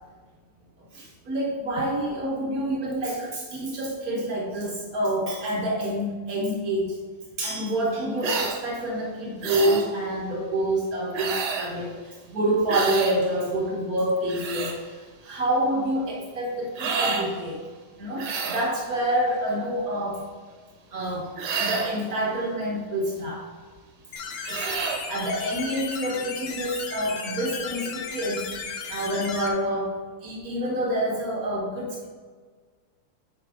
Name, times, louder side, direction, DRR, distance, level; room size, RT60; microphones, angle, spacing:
voice 1, 0.9-6.9 7.4-14.7 15.2-17.6 18.0-20.2 20.9-21.3 21.6-23.4 24.5-24.8 25.1-28.4 28.9-29.9 30.2-32.1, right 1 dB, 85° right, -2 dB, 0.7 m, -27 dB
sound 1, 8.2-8.6 9.4-9.9 11.1-11.7 12.7-13.2 14.1-14.8 16.8-17.3 18.2-18.7 21.4-22.0 24.4-25.0, right 5 dB, 70° right, 1.1 m, -29 dB
sound 2, 24.1-29.5, left 6 dB, 70° left, 1.6 m, -35 dB
8.4 x 5.1 x 3.8 m, 1.5 s
omnidirectional pair, 3.3 m